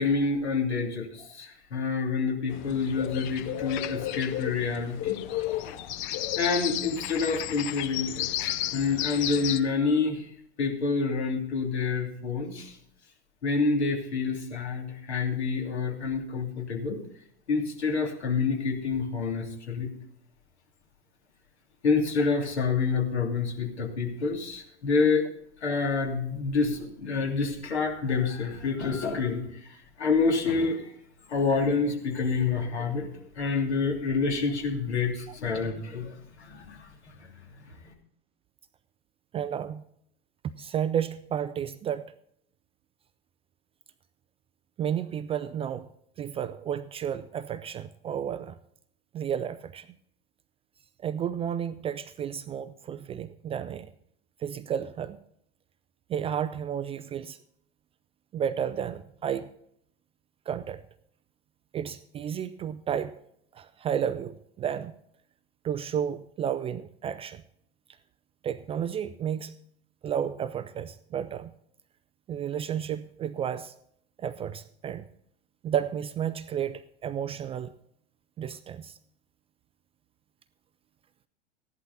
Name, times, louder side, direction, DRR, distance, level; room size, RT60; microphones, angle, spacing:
voice 1, 0.0-5.9 6.4-10.3 10.6-12.8 13.4-17.0 17.5-19.9 21.8-25.2 25.6-29.4 29.7-30.9 31.3-33.1 33.4-37.2 37.8-37.9, left 4 dB, 70° left, 2.9 m, -28 dB
sound 1, 2.5-9.6, left 13 dB, 40° left, 0.7 m, -33 dB
voice 2, 39.3-39.8 40.6-42.1 44.8-45.9 46.2-48.6 49.1-49.9 51.0-53.9 54.4-55.2 56.1-57.4 58.3-59.5 60.5-60.8 61.7-63.2 63.5-65.0 65.6-67.4 68.4-69.5 70.0-71.5 72.3-73.7 74.2-75.1 75.6-77.7 78.4-79.0, right 9 dB, 20° right, 0.4 m, -32 dB
14.5 x 11.0 x 4.0 m
figure-of-eight pair, 90°, 34 cm